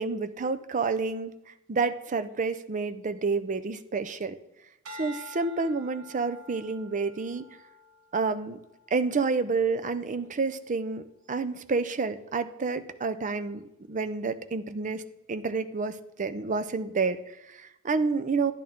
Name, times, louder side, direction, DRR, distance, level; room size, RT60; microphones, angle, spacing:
voice 1, 0.0-1.3 1.7-4.4 4.9-7.4 8.1-8.6 8.9-15.0 15.3-18.5, right 4 dB, 35° right, 10 dB, 0.5 m, -29 dB
sound 1, 4.8-9.3 9.9-10.3, left 1 dB, 80° right, 1.4 m, -48 dB
10.5 x 10.5 x 3.6 m, 0.88 s
head